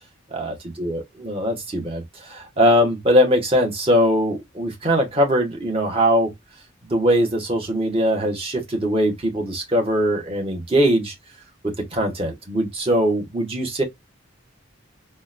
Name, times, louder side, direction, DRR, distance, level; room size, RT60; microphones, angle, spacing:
voice 1, 0.3-6.3 6.8-11.1 11.6-13.8, equal, 30° right, 1.0 m, -21 dB
3.7 x 2.2 x 2.5 m
head